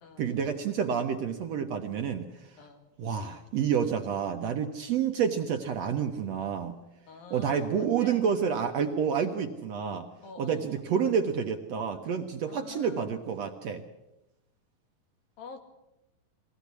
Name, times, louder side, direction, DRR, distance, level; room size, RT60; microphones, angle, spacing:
voice 1, 0.2-2.5 3.0-6.7 7.3-10.1 10.4-13.8, right 7 dB, 65° right, 5 dB, 1.8 m, -29 dB
voice 2, 2.6-2.9 7.1-8.3 10.2-10.8 12.5-13.2 15.4-15.6, left 5 dB, 80° left, 6 dB, 3.8 m, -46 dB
22.0 x 17.0 x 8.3 m, 0.92 s
omnidirectional pair, 4.1 m